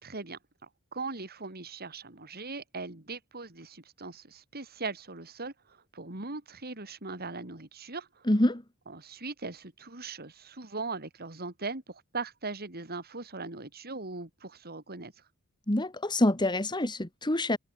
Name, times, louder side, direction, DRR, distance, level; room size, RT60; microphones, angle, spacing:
voice 1, 0.0-8.3 8.9-15.1, right 3 dB, 45° right, 3.5 m, -40 dB
voice 2, 8.3-8.6 15.7-17.6, left 1 dB, 20° left, 1.8 m, -26 dB
head